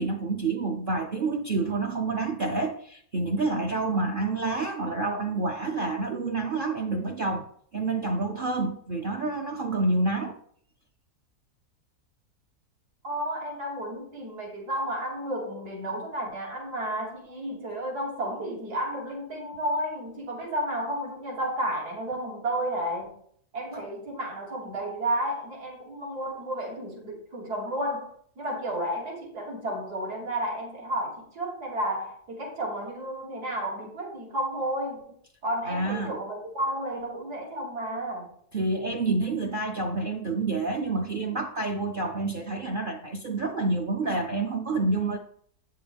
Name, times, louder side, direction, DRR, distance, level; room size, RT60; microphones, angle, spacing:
voice 1, 0.0-7.4 7.7-10.4 35.7-36.2 38.5-45.2, right 3 dB, 50° right, 0.6 m, -28 dB
voice 2, 13.0-23.2 23.5-35.0 35.4-38.3, right 1 dB, 80° right, 2.9 m, -32 dB
8.7 x 6.9 x 3.4 m
omnidirectional pair, 1.7 m